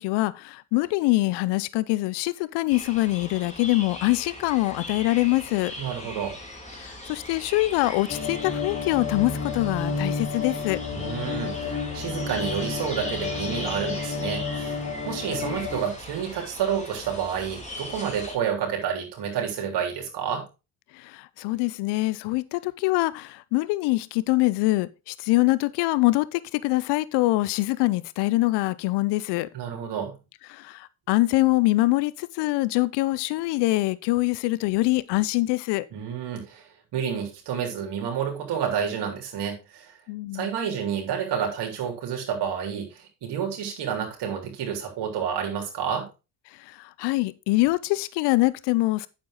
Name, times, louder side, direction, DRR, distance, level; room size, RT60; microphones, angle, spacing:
voice 1, 0.0-5.7 6.8-10.8 20.9-29.5 30.5-35.9 40.1-40.5 46.6-49.1, left 20 dB, 65° left, 0.7 m, -24 dB
sound 1, 2.7-18.4, left 1 dB, 15° left, 3.4 m, -39 dB
voice 2, 5.8-6.4 10.9-14.8 15.0-20.5 29.5-30.1 35.9-40.0 40.3-46.1, right 8 dB, 60° right, 3.6 m, -29 dB
sound 2, 8.1-15.8, left 4 dB, 35° left, 3.2 m, -31 dB
8.8 x 7.5 x 3.8 m
hypercardioid pair, 55°, 44 cm